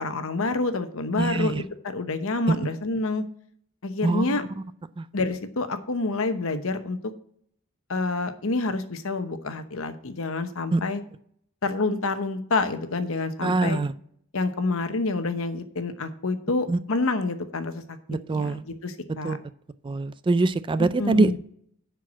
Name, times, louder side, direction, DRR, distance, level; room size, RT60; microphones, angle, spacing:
voice 1, 0.0-3.2 3.8-4.4 5.1-7.0 7.9-11.0 11.6-13.8 14.3-17.8 18.3-19.4 20.8-21.4, left 3 dB, 70° left, 9 dB, 1.0 m, -28 dB
voice 2, 1.2-1.6 2.5-2.6 4.0-4.4 5.0-5.1 10.7-10.8 13.4-13.9 16.7-16.8 18.1-18.6 19.2-19.4 19.8-21.4, right 3 dB, 25° right, 14 dB, 0.4 m, -23 dB
10.5 x 4.7 x 6.0 m, 0.65 s
head